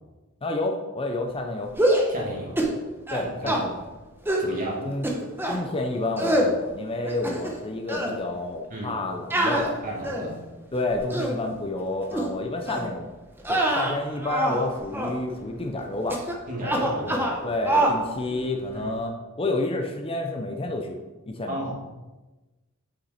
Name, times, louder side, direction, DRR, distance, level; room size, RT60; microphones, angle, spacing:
voice 1, 0.4-1.7 3.1-3.8 4.8-5.1 5.5-9.8 10.7-13.1 13.5-16.2 17.0-21.0 21.3-21.6, left 2 dB, 25° left, 3 dB, 0.6 m, -29 dB
sound 1, 1.7-2.1 2.6-2.8 3.1-3.6 4.3-4.5 5.0-5.6 6.2-6.5 7.0-7.6 7.9-8.1 9.3-10.4 10.9-11.4 12.1-12.3 12.7-12.9 13.4-14.6 14.9-15.2 16.1-16.4 16.6-17.4 17.7-18.0, right 1 dB, 10° right, 1.0 m, -25 dB
voice 2, 2.1-2.6 3.4-3.6 4.4-4.9 8.7-9.0 9.8-10.4 16.5-17.2 18.3-18.4 18.7-18.9 21.5-21.8, right 1 dB, 40° right, -2 dB, 1.9 m, -33 dB
8.0 x 5.8 x 4.2 m, 1.1 s
head